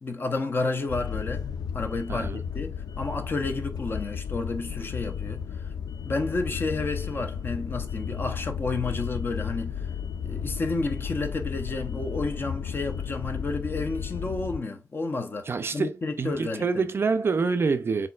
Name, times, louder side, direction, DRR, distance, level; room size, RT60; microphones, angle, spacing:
voice 1, 0.0-1.5 1.7-5.7 6.0-9.9 10.2-16.8, left 3 dB, 35° left, 0.6 m, -31 dB
sound 1, 0.9-14.6, left 7 dB, 80° left, 0.4 m, -33 dB
voice 2, 2.1-2.4 15.5-18.1, right 4 dB, 40° right, 0.4 m, -26 dB
4.3 x 4.0 x 2.3 m
wide cardioid pair, 165°, 6 cm